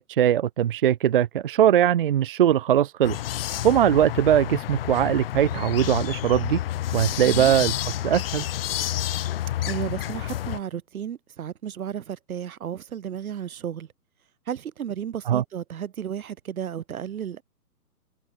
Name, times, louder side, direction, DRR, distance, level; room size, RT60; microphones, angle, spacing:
voice 1, 0.0-3.2 3.6-6.6 6.9-8.4 15.3-15.4, right 10 dB, 35° right, 0.8 m, -21 dB
sound 1, 3.0-10.6, left 13 dB, 35° left, 2.3 m, -29 dB
voice 2, 9.6-13.9 14.5-17.4, right 9 dB, 65° right, 1.3 m, -33 dB
hypercardioid pair, 155°, 47 cm